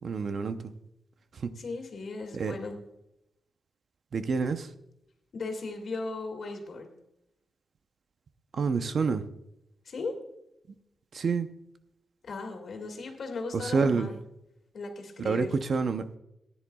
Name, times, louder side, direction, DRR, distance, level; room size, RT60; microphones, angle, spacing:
voice 1, 0.0-0.7 1.3-1.5 2.3-2.5 4.1-4.7 8.5-9.2 11.1-11.5 13.5-14.1 15.2-16.1, right 5 dB, 55° right, 9 dB, 0.7 m, -28 dB
voice 2, 1.6-2.8 5.3-6.9 9.8-10.1 12.2-14.2 14.7-15.5, left 3 dB, 60° left, 3 dB, 2.2 m, -37 dB
18.5 x 10.0 x 2.3 m, 0.84 s
wide cardioid pair, 150°, 0 cm